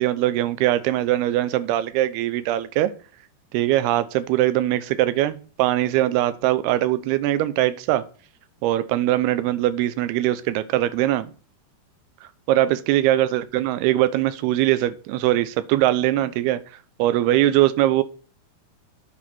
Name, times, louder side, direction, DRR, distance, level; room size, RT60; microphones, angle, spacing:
voice 1, 0.0-2.9 3.5-8.0 8.6-11.3 12.5-16.6 17.0-18.0, right 14 dB, 80° right, 2.6 m, -21 dB
9.7 x 4.6 x 4.3 m
omnidirectional pair, 4.7 m